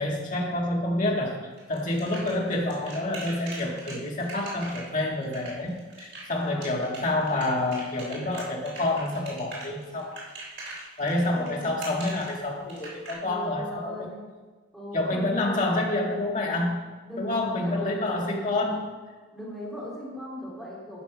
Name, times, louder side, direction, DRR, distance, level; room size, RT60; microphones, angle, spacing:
voice 1, 0.0-10.2 11.0-14.1 14.9-16.8 17.2-18.9, left 2 dB, 40° left, -2 dB, 2.0 m, -28 dB
sound 1, 1.6-13.1, right 2 dB, 60° right, 3.5 m, -41 dB
voice 2, 6.4-6.7 11.3-11.8 13.2-14.3 14.7-15.7 17.0-18.8 19.3-21.0, left 1 dB, ahead, -8 dB, 2.7 m, -39 dB
11.5 x 6.7 x 5.0 m, 1.3 s
head